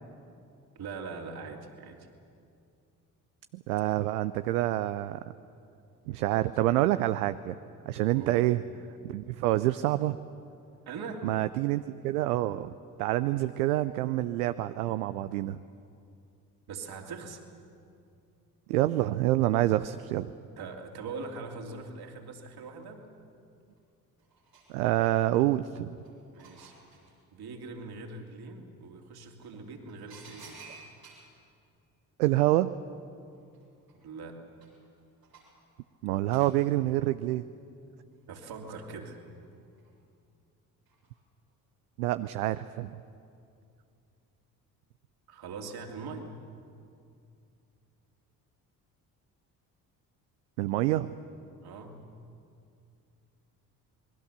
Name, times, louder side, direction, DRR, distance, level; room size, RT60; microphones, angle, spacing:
voice 1, 0.7-2.1 8.1-8.5 10.9-11.3 16.7-17.4 20.6-23.1 26.3-26.7 27.3-30.7 33.9-34.4 38.3-39.2 45.3-46.3 51.6-52.0, right 4 dB, 50° right, 3 dB, 3.0 m, -42 dB
voice 2, 3.5-5.2 6.1-7.6 7.9-8.6 9.0-10.2 11.2-12.7 13.0-15.6 18.7-20.3 24.7-26.0 32.2-32.7 36.0-37.4 42.0-42.9 50.6-51.1, right 15 dB, 70° right, 12 dB, 0.7 m, -27 dB
sound 1, 23.8-23.9 24.2-25.4 25.9-27.1 28.8-28.9 29.4-31.4 33.0-33.1 33.3-35.7 36.3-36.6 38.1-38.8 39.3-39.9 40.9-41.1 41.5-41.6, right 4 dB, 90° right, 4.9 m, -54 dB
27.5 x 21.0 x 6.8 m, 2.5 s
figure-of-eight pair, 50°, 46 cm